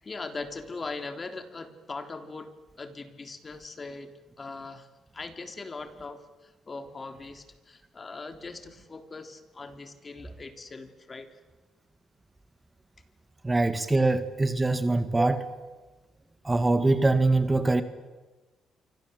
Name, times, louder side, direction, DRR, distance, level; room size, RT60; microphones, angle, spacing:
voice 1, 0.0-4.9 5.1-11.3, left 3 dB, 30° left, 8 dB, 3.5 m, -40 dB
voice 2, 13.4-15.6 16.4-17.8, right 2 dB, 20° right, 10 dB, 1.9 m, -23 dB
29.0 x 25.0 x 8.1 m, 1.2 s
cardioid pair, 90°, 0 cm